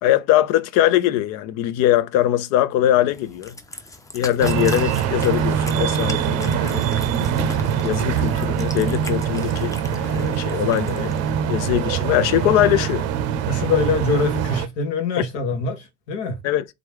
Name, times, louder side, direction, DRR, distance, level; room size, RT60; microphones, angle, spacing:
voice 1, 0.0-3.6 4.1-6.8 7.4-11.1 11.5-13.1 16.4-16.6, left 13 dB, 50° left, 0.4 m, -21 dB
Cat, 3.1-11.3, left 2 dB, 10° left, 0.7 m, -39 dB
sound 1, 4.4-14.7, right 8 dB, 45° right, 0.6 m, -23 dB
voice 2, 13.5-16.4, left 4 dB, 65° left, 1.3 m, -24 dB
3.8 x 3.0 x 3.2 m
figure-of-eight pair, 60°, 35 cm